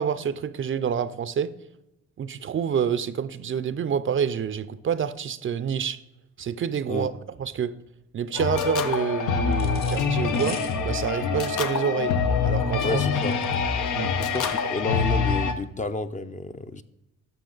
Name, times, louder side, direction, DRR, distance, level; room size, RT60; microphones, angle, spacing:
voice 1, 0.0-1.5 2.2-6.0 6.4-7.1 7.4-7.7 8.1-10.6 10.8-12.1 12.4-13.0 13.9-14.1, right 7 dB, 40° right, 0.5 m, -27 dB
sound 1, 8.3-15.5, left 5 dB, 80° left, 1.0 m, -25 dB
sound 2, 9.5-15.0, left 5 dB, 60° left, 1.6 m, -42 dB
voice 2, 12.8-13.4 14.2-16.8, left 3 dB, 25° left, 0.6 m, -31 dB
11.5 x 6.6 x 3.9 m
cardioid pair, 90°, 30 cm